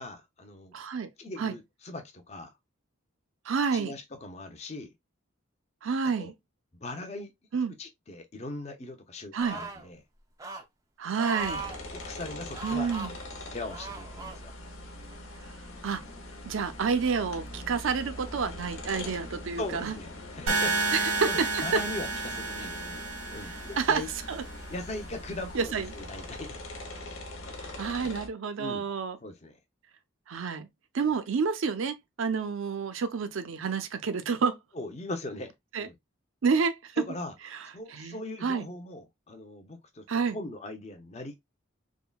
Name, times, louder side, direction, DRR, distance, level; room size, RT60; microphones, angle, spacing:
voice 1, 0.0-0.7 1.2-2.5 3.7-4.9 6.2-6.3 6.8-7.3 7.8-10.0 11.7-12.9 13.5-14.5 19.6-20.9 21.3-23.0 23.3-24.1 24.7-26.6 28.0-28.1 28.6-28.9 29.2-29.6 34.7-35.9 37.0-37.3 37.7-40.0 40.3-41.4, left 2 dB, 30° left, 0.6 m, -40 dB
voice 2, 0.7-1.1 1.4-1.5 3.5-3.9 5.8-6.3 7.5-7.7 9.3-9.6 11.0-11.6 12.6-13.1 15.8-16.0 16.5-19.9 20.9-21.8 23.8-24.0 24.3-24.4 25.5-25.9 27.6-29.2 30.3-30.7 30.9-34.6 35.7-35.9 36.4-37.0 37.9-38.7 40.1-40.4, right 5 dB, 70° right, 0.5 m, -29 dB
sound 1, 9.4-9.9 10.4-10.6 11.2-11.8 12.5-13.1 13.7-14.4 15.1-15.2, right 3 dB, 15° right, 0.4 m, -38 dB
sound 2, 11.4-28.3, left 1 dB, 80° left, 0.8 m, -42 dB
sound 3, 20.5-24.5, right 3 dB, 85° right, 1.1 m, -31 dB
3.6 x 2.1 x 2.2 m
head